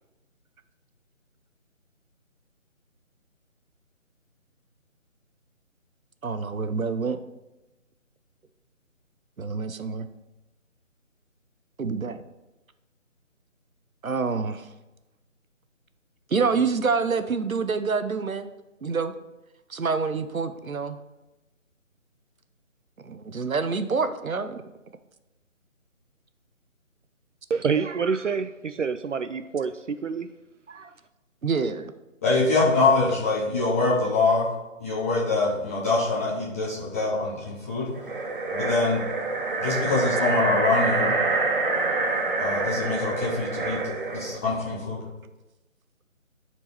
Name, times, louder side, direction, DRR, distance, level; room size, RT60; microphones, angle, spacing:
voice 1, 6.2-7.2 9.4-10.1 11.8-12.2 14.0-14.7 16.3-18.5 18.8-19.1 19.7-21.0 23.0-24.6 31.4-31.9, right 5 dB, 85° right, 10 dB, 0.9 m, -27 dB
voice 2, 27.5-30.3 30.7-30.9, right 5 dB, 65° right, 11 dB, 0.5 m, -27 dB
voice 3, 32.2-34.5 34.8-37.9 38.5-39.0 39.6-41.2 42.4-45.0, left 3 dB, 10° left, -7 dB, 1.2 m, -24 dB
sound 1, 37.9-44.4, right 3 dB, 40° right, 1.0 m, -26 dB
12.0 x 4.6 x 4.4 m, 1.0 s
figure-of-eight pair, 160°, 40 cm